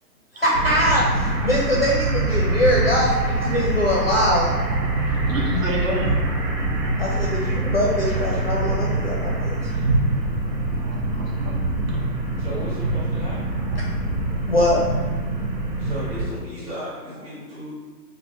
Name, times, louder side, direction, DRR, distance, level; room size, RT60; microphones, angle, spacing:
voice 1, 0.3-4.5 7.0-9.8 14.5-14.8, left 1 dB, 40° left, -4 dB, 0.4 m, -22 dB
sound 1, 0.5-16.2, right 2 dB, 80° right, 1.2 m, -24 dB
voice 2, 4.5-4.9 5.3-6.1 10.7-11.7 13.7-13.8, equal, 50° right, -2 dB, 0.9 m, -30 dB
voice 3, 12.4-13.6 15.8-17.7, left 1 dB, ahead, -12 dB, 0.7 m, -35 dB
3.3 x 2.5 x 4.1 m, 1.4 s
hypercardioid pair, 160°, 50 cm